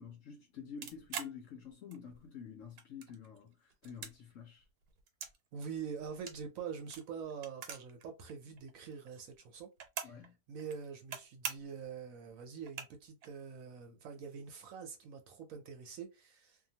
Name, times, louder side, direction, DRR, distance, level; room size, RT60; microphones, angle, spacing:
voice 1, 0.0-4.6 10.0-10.4, left 7 dB, 65° left, 0.9 m, -49 dB
sound 1, 0.8-2.3 2.6-3.4 3.7-5.4 5.6-8.0 8.3-8.4 8.6-10.3 10.6-11.2 11.4-11.8 12.3-12.4 12.6-13.3, right 7 dB, 90° right, 1.2 m, -44 dB
voice 2, 5.5-9.7 10.0-10.2 10.5-16.7, right 6 dB, 70° right, 0.9 m, -45 dB
2.8 x 2.2 x 2.7 m
omnidirectional pair, 1.7 m